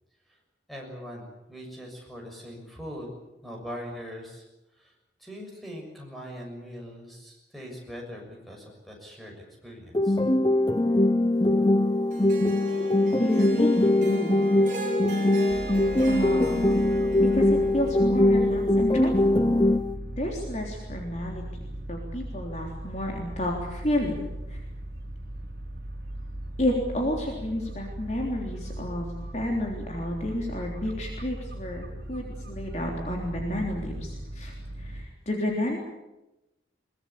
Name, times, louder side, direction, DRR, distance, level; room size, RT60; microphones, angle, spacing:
voice 1, 0.7-3.1 3.4-4.4 4.7-4.9 5.2-9.3 9.6-10.2, equal, ahead, 0 dB, 6.6 m, -41 dB
sound 1, 9.9-19.9, left 1 dB, 25° left, 0.7 m, -22 dB
Harp, 12.1-18.5, right 1 dB, 45° right, 6.2 m, -40 dB
voice 2, 12.8-14.4 16.1-16.6 17.3-19.5 20.1-24.2 24.5-24.6 26.6-35.8, left 1 dB, 40° left, 0 dB, 3.6 m, -31 dB
sound 2, 15.5-35.1, right 1 dB, 65° right, 3.8 m, -38 dB
22.5 x 20.5 x 8.6 m, 0.96 s
head